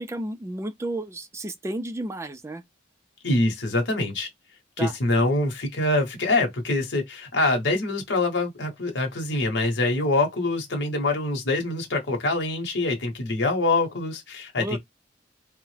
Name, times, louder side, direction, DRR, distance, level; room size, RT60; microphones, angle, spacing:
voice 1, 0.0-2.6 4.8-4.9 14.6-14.8, right 1 dB, 15° right, 0.3 m, -32 dB
voice 2, 3.2-4.3 4.8-14.8, left 2 dB, 80° left, 1.0 m, -25 dB
3.4 x 2.1 x 3.1 m
head